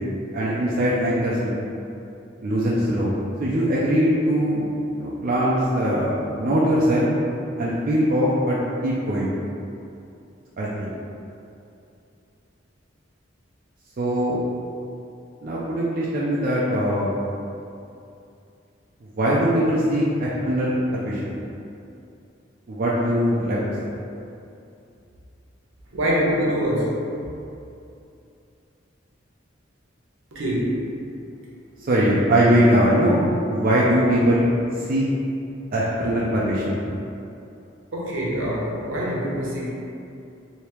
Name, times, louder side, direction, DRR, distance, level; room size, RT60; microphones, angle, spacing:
voice 1, 0.3-1.5 2.4-3.1 3.4-7.1 7.6-8.6 8.8-9.4 10.6-10.9 14.0-14.4 15.4-17.1 19.2-21.4 22.7-23.9 31.8-34.5 34.8-35.0 35.7-36.8, equal, 45° right, -7 dB, 0.4 m, -21 dB
voice 2, 25.9-26.9 30.3-30.7 37.9-39.8, equal, 75° right, -5 dB, 0.8 m, -24 dB
3.3 x 2.7 x 3.0 m, 2.6 s
head